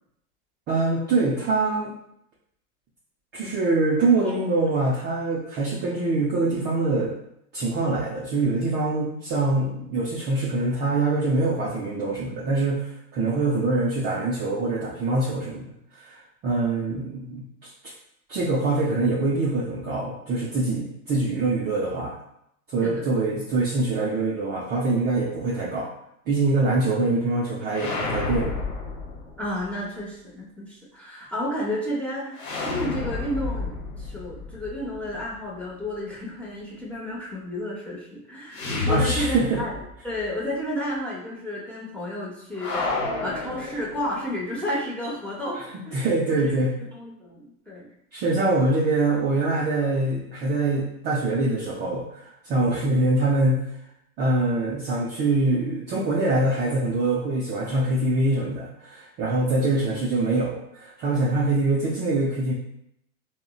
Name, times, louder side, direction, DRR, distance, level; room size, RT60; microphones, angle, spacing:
voice 1, 0.7-1.9 3.3-7.2 7.5-15.7 16.0-17.5 18.3-22.2 22.7-25.9 26.3-28.6 38.9-39.6 45.5-46.7 48.1-53.6 54.2-62.5, right 2 dB, 25° right, -5 dB, 0.4 m, -24 dB
sound 1, 27.7-29.7 32.4-35.4 38.5-39.9 40.2-40.3 42.5-44.3, left 3 dB, 65° left, 1.1 m, -30 dB
voice 2, 29.4-42.9 43.2-45.6 45.9-46.1 46.4-46.5 46.8-47.9, left 1 dB, 5° left, -6 dB, 0.7 m, -32 dB
3.6 x 2.1 x 2.3 m, 0.76 s
hypercardioid pair, 105°, 44 cm